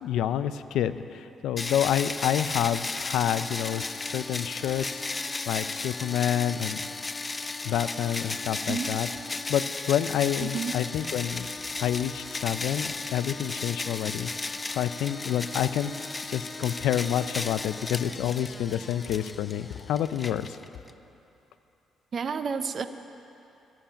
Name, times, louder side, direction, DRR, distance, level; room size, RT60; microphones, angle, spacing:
voice 1, 0.0-5.0 5.5-6.8 7.6-9.1 9.5-11.5 11.8-15.9 16.3-20.6, left 10 dB, 85° left, 13 dB, 0.4 m, -28 dB
sound 1, 1.6-20.9, left 3 dB, 25° left, 0.4 m, -35 dB
voice 2, 8.5-8.9 10.4-10.8 22.1-22.9, right 5 dB, 45° right, 10 dB, 0.7 m, -31 dB
15.5 x 7.1 x 8.8 m, 2.9 s
cardioid pair, 90°, 0 cm